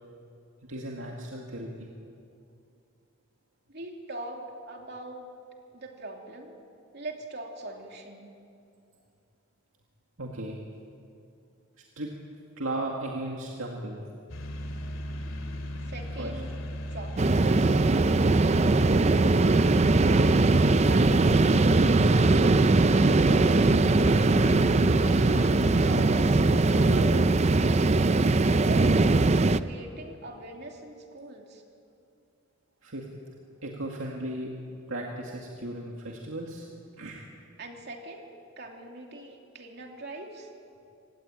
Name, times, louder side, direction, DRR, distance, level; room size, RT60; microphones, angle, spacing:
voice 1, 0.7-1.9 10.2-10.6 12.0-12.1 12.6-14.0 16.2-16.3 23.2-23.6 24.2-25.3 25.7-26.4 26.7-27.5 32.8-33.0 33.6-34.5 34.9-36.7 37.0-37.3, right 1 dB, 80° right, -1 dB, 2.2 m, -36 dB
voice 2, 3.7-5.3 5.7-6.5 6.9-8.3 15.9-16.5 16.9-18.1 20.7-21.7 28.6-29.0 29.6-31.6 37.6-38.3 38.6-40.5, right 2 dB, 55° right, 2 dB, 3.0 m, -42 dB
sound 1, 14.3-27.0, left 1 dB, 70° left, 2.8 m, -36 dB
sound 2, 17.2-29.6, right 3 dB, 35° right, 0.5 m, -21 dB
26.0 x 18.0 x 8.9 m, 2.5 s
head